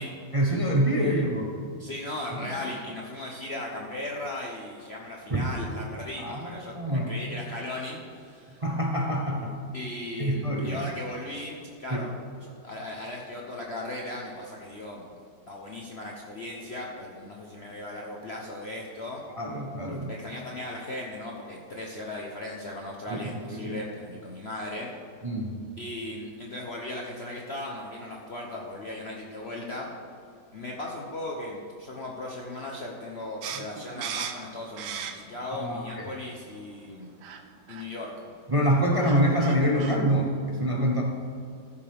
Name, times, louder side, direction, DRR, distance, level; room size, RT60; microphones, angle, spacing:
voice 1, 0.3-1.5 2.3-2.5 5.3-5.5 6.2-7.1 8.6-9.5 10.2-10.8 11.9-12.0 19.3-20.1 23.1-23.8 25.2-25.5 35.6-36.0 38.5-41.0, equal, 40° right, 0 dB, 0.4 m, -26 dB
voice 2, 1.8-8.6 9.7-12.1 12.4-15.1 15.5-19.2 20.1-24.9 25.8-29.9 30.5-37.1 37.7-38.1, left 1 dB, 45° left, -2 dB, 0.9 m, -37 dB
sound 1, 33.4-35.5 35.8-36.6 37.2-37.4 37.7-37.8 38.7-38.8 39.0-40.0, right 8 dB, 75° right, 1.3 m, -37 dB
15.0 x 7.0 x 3.5 m, 2.4 s
omnidirectional pair, 1.9 m